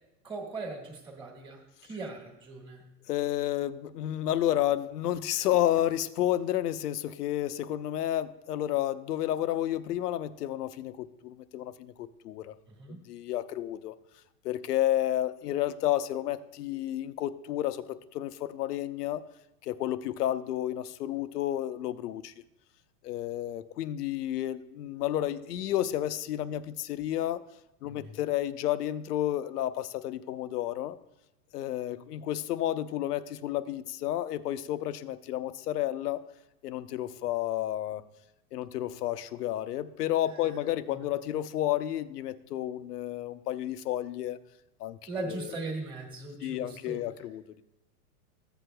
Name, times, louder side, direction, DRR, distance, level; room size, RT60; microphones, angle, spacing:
voice 1, 0.2-2.8 12.8-13.0 27.8-28.1 40.2-40.6 40.9-41.1 45.1-47.0, right 3 dB, 10° right, -1 dB, 1.4 m, -39 dB
voice 2, 3.1-12.5 12.9-13.9 14.4-19.2 19.6-22.3 23.0-27.4 27.8-31.0 31.5-36.2 36.6-38.0 38.5-44.4 44.8-45.5 46.4-47.6, left 13 dB, 85° left, 13 dB, 0.7 m, -31 dB
14.5 x 8.1 x 2.2 m, 0.91 s
supercardioid pair, 160°, 45 cm